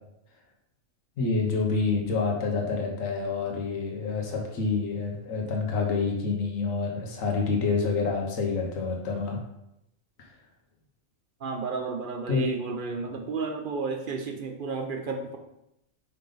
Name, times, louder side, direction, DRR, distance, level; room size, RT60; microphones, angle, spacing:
voice 1, 1.2-9.4 12.3-12.4, left 4 dB, 75° left, 0 dB, 1.5 m, -27 dB
voice 2, 11.4-15.4, right 4 dB, 50° right, 4 dB, 0.7 m, -32 dB
5.4 x 5.2 x 3.9 m, 0.83 s
omnidirectional pair, 1.4 m